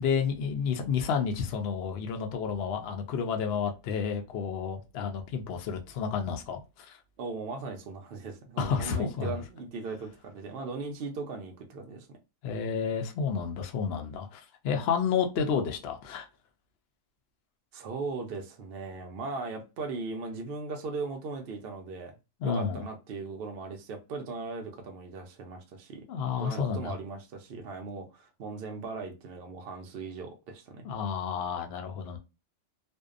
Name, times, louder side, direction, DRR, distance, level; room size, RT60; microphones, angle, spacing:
voice 1, 0.0-7.0 8.6-9.3 12.4-16.3 22.4-22.8 26.1-27.0 30.8-32.2, left 6 dB, 75° left, 0.5 m, -30 dB
voice 2, 7.2-12.1 15.4-15.5 17.7-22.2 22.4-26.0 26.4-30.9, right 4 dB, 75° right, 0.5 m, -38 dB
2.6 x 2.2 x 2.4 m
omnidirectional pair, 1.6 m